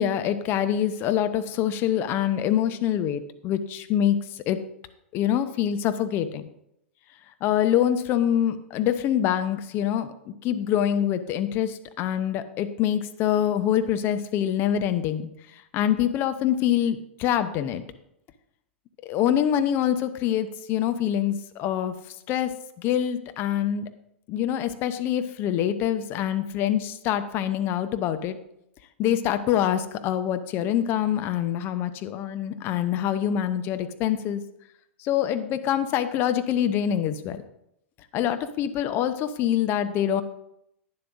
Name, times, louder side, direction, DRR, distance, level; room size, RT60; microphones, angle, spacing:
voice 1, 0.0-4.2 4.5-4.6 5.1-6.5 7.4-10.1 10.4-15.3 15.7-17.8 19.0-21.9 22.3-22.5 22.8-23.9 24.3-28.4 29.0-34.4 35.0-37.4 38.1-40.2, left 10 dB, 35° left, 10 dB, 0.6 m, -25 dB
11.0 x 9.6 x 2.5 m, 0.79 s
figure-of-eight pair, 100°, 7 cm